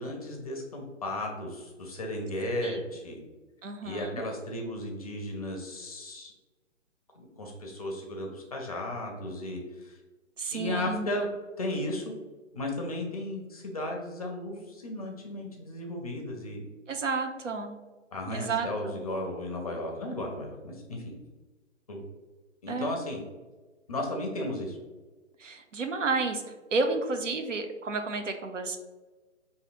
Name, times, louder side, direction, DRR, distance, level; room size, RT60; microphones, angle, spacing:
voice 1, 0.0-3.2 3.8-6.3 7.1-10.0 10.5-11.3 11.6-12.1 12.5-16.7 18.1-21.0 21.9-22.0 22.6-23.2 23.9-24.8, left 1 dB, 30° left, 1 dB, 0.5 m, -35 dB
voice 2, 3.6-4.2 10.4-11.1 16.9-17.8 18.3-19.0 22.7-23.0 25.4-28.8, right 4 dB, 75° right, 6 dB, 0.6 m, -31 dB
4.9 x 2.6 x 2.4 m, 1.3 s
figure-of-eight pair, 140°, 37 cm